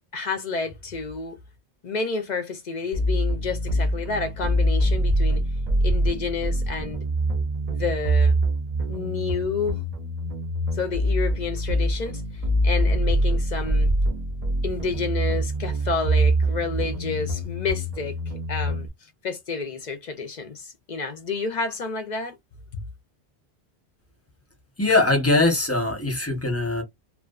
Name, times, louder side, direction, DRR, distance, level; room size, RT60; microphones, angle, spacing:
voice 1, 0.1-1.4 1.8-5.4 5.8-7.0 7.7-8.4 8.9-9.8 10.7-13.9 14.6-18.2 18.5-18.9 19.2-22.4 22.7-22.8, left 4 dB, 55° left, 0.5 m, -30 dB
sound 1, 2.9-18.9, right 1 dB, 45° right, 0.6 m, -24 dB
voice 2, 24.8-26.8, left 2 dB, 15° left, 0.8 m, -21 dB
2.5 x 2.2 x 2.3 m
omnidirectional pair, 1.1 m